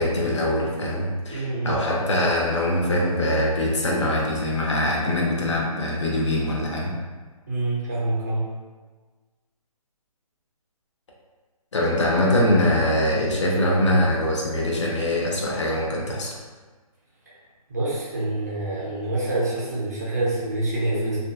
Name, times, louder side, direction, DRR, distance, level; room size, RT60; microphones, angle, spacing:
voice 1, 0.0-6.9 11.7-16.3, left 1 dB, 50° left, -3 dB, 0.6 m, -23 dB
voice 2, 1.3-1.8 7.5-8.5 17.3-17.4 17.7-21.2, right 2 dB, 25° right, -7 dB, 0.5 m, -26 dB
2.7 x 2.2 x 2.2 m, 1.4 s
hypercardioid pair, 175°, 19 cm